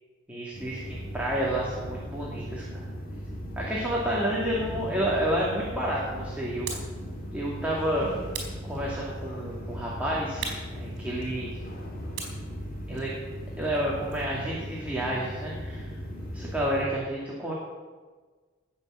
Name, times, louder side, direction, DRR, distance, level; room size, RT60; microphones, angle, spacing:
voice 1, 0.3-2.8 3.6-6.8 7.3-8.1 8.6-11.5 12.9-13.1 13.6-15.9 16.3-17.5, right 1 dB, 5° right, -5 dB, 2.5 m, -30 dB
sound 1, 0.5-16.8, equal, 45° left, 4.3 m, -38 dB
sound 2, 6.7-7.0 8.3-9.2 10.4-11.5 12.2-14.4, right 4 dB, 55° right, 4.5 m, -40 dB
18.0 x 6.9 x 7.8 m, 1.4 s
head